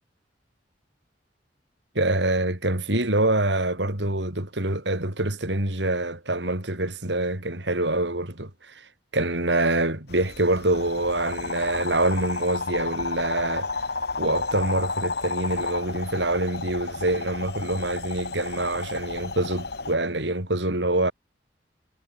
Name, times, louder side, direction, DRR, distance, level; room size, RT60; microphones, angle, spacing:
voice 1, 1.9-13.9 14.2-21.1, right 2 dB, 75° right, 5.0 m, -25 dB
sound 1, 10.1-20.0, left 4 dB, 60° left, 2.2 m, -32 dB
head